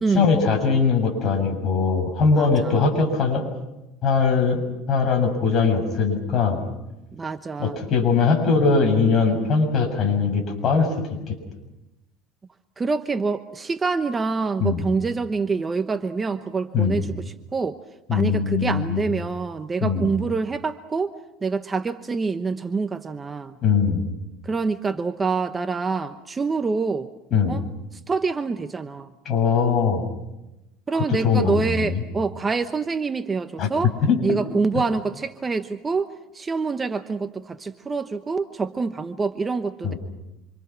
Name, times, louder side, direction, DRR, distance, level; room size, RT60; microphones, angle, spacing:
voice 1, 0.1-3.4 4.0-4.6 4.9-6.6 7.6-10.9 11.3-11.4 14.6-14.8 16.7-17.0 18.1-19.0 19.8-20.1 23.6-24.0 27.3-27.6 29.3-30.0 30.9-32.0 33.6-33.7 34.0-34.2 34.7-34.8 39.8-40.0, left 5 dB, 40° left, 3 dB, 7.2 m, -21 dB
voice 2, 2.3-2.8 7.1-7.8 12.8-17.8 18.1-21.1 21.4-23.6 24.4-27.1 27.4-27.6 28.1-29.1 30.9-33.9 34.2-39.9, right 4 dB, 20° right, 8 dB, 1.0 m, -26 dB
27.5 x 26.0 x 6.1 m, 0.97 s
supercardioid pair, 125°, 0 cm